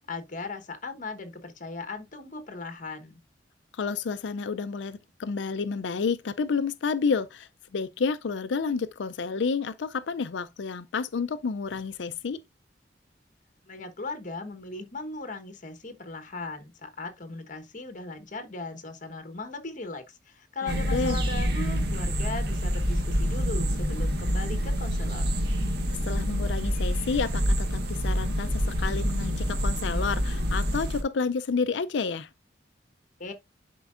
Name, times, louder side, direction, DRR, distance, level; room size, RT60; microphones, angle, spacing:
voice 1, 0.0-3.2 13.7-25.3 33.2-33.3, left 3 dB, 45° left, 1.2 m, -38 dB
voice 2, 3.7-12.4 20.6-21.2 26.0-32.3, left 5 dB, 80° left, 0.5 m, -30 dB
sound 1, 20.7-31.0, equal, 60° right, 1.5 m, -27 dB
10.5 x 4.5 x 2.5 m
head